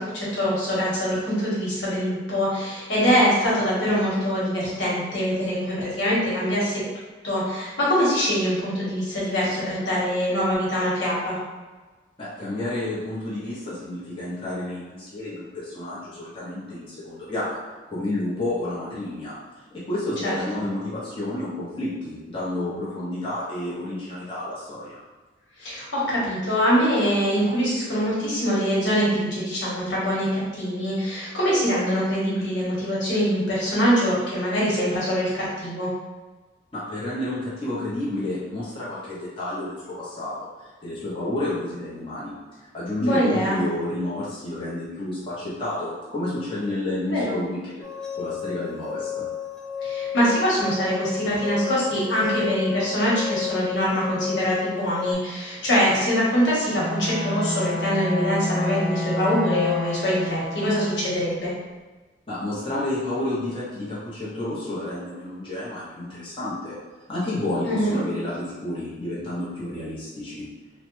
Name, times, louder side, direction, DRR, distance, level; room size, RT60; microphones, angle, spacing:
voice 1, 0.0-6.8 7.2-11.4 20.2-20.6 25.6-35.9 43.0-43.6 47.0-47.4 49.8-61.5 67.6-68.0, equal, 75° left, -7 dB, 1.2 m, -23 dB
voice 2, 12.2-17.6 17.9-19.3 19.9-25.0 36.7-42.3 42.7-47.6 48.1-49.2 62.3-66.7 67.1-70.5, left 1 dB, 30° left, -10 dB, 0.7 m, -30 dB
sound 1, 47.8-55.1, left 8 dB, 5° left, 0.3 m, -32 dB
Bowed string instrument, 56.8-61.1, left 1 dB, 20° right, 0.7 m, -29 dB
3.0 x 2.1 x 3.1 m, 1.3 s
head